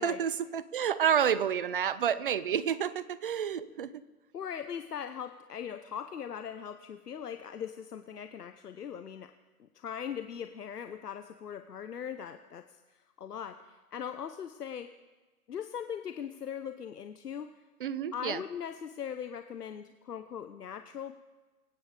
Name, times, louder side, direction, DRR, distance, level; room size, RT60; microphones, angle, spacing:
voice 1, 0.0-3.9 17.8-18.4, right 8 dB, 35° right, 17 dB, 0.5 m, -29 dB
voice 2, 4.3-9.3 9.6-14.9 15.5-17.6 18.1-21.1, left 8 dB, 80° left, 9 dB, 0.9 m, -40 dB
24.5 x 8.7 x 4.9 m, 1.2 s
hypercardioid pair, 135°, 46 cm